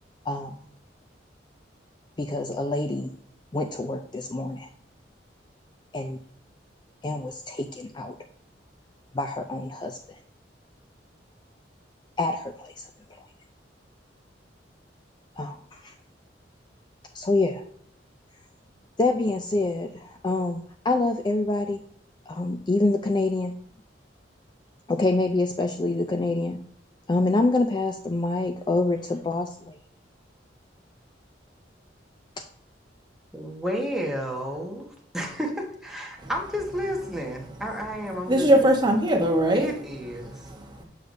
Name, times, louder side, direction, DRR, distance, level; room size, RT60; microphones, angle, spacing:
voice 1, 0.3-0.6 2.2-3.1 3.5-4.7 5.9-6.2 7.0-8.2 9.1-10.2 12.2-13.3 15.4-15.9 17.1-17.6 19.0-21.8 22.3-23.6 24.9-26.6 27.1-29.8, left 2 dB, 25° left, 5 dB, 0.4 m, -26 dB
voice 2, 33.3-34.9 35.1-38.7 39.5-40.4, equal, ahead, -1 dB, 1.3 m, -31 dB
voice 3, 38.3-39.7 40.2-40.8, right 1 dB, 25° right, 1 dB, 1.1 m, -21 dB
6.8 x 6.5 x 2.6 m, 0.63 s
head